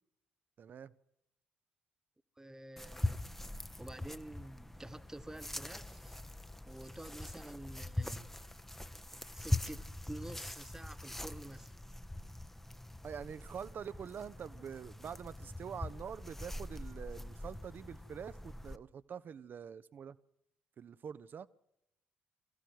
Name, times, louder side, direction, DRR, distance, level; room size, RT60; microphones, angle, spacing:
voice 1, 0.6-0.9 13.0-20.2 20.8-21.5, right 7 dB, 45° right, 0.7 m, -45 dB
voice 2, 2.4-3.2 3.8-6.2 6.7-8.3 9.3-11.7, right 1 dB, 10° right, 1.4 m, -49 dB
sound 1, 2.8-18.8, left 1 dB, 5° left, 0.8 m, -42 dB
23.5 x 15.0 x 7.9 m
figure-of-eight pair, 45°, 5 cm